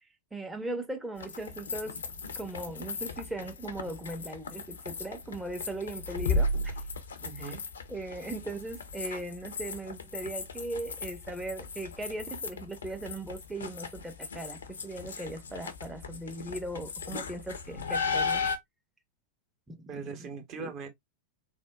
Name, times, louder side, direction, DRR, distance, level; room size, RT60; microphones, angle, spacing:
voice 1, 0.3-2.0 2.3-6.8 7.4-7.5 7.9-18.4 19.7-20.3 20.6-20.7, right 1 dB, 5° right, 0.6 m, -38 dB
sound 1, 1.2-18.6, left 3 dB, 70° left, 0.5 m, -36 dB
voice 2, 7.2-7.6 19.9-20.9, right 5 dB, 40° right, 0.9 m, -40 dB
3.4 x 2.1 x 2.3 m
figure-of-eight pair, 90°, 0 cm